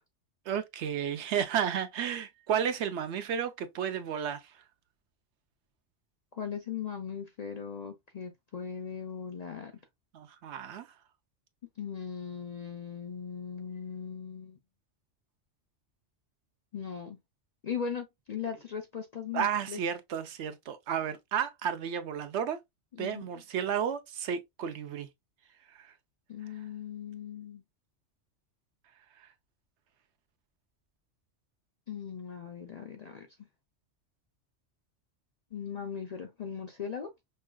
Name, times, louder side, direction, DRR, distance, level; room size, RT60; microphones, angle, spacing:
voice 1, 0.5-4.4 10.1-10.9 19.3-22.6 23.0-25.1 25.7-25.9, right 8 dB, 75° right, 0.9 m, -32 dB
voice 2, 6.3-9.7 11.8-14.6 16.7-17.2 17.6-19.8 22.9-23.2 26.3-27.6 31.9-33.5 35.5-37.1, left 7 dB, 50° left, 0.5 m, -39 dB
5.4 x 2.3 x 2.2 m
omnidirectional pair, 1.2 m